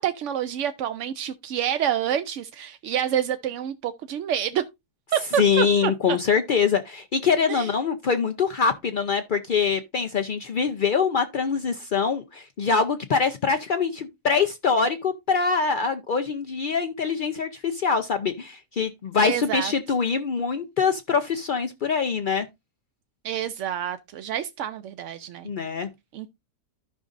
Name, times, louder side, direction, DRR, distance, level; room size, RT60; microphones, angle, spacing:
voice 1, 0.0-4.6 5.1-6.2 7.5-7.7 19.2-19.7 23.2-25.5 26.1-26.3, right 10 dB, 65° right, 0.7 m, -28 dB
voice 2, 5.4-22.5 25.4-25.9, left 5 dB, 70° left, 0.4 m, -24 dB
14.5 x 5.2 x 2.5 m
omnidirectional pair, 1.7 m